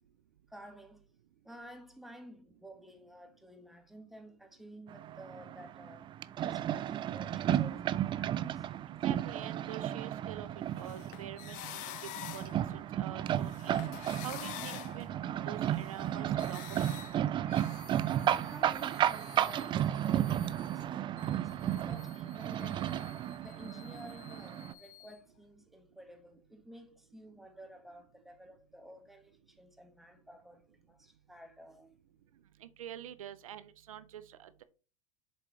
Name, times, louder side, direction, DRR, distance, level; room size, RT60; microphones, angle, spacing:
voice 1, 0.5-1.1 1.4-8.7 14.7-14.8 16.8-16.9 18.3-22.9 23.4-31.9, equal, ahead, 1.4 m, -53 dB
sound 1, 4.9-24.7, right 11 dB, 30° right, 0.4 m, -34 dB
voice 2, 9.0-10.5 10.8-17.2 32.6-34.6, right 10 dB, 80° right, 0.6 m, -47 dB
sound 2, 10.6-12.8 13.2-20.8 21.2-25.1, left 14 dB, 50° left, 0.6 m, -49 dB
7.2 x 4.5 x 3.0 m
hypercardioid pair, 95°, 17 cm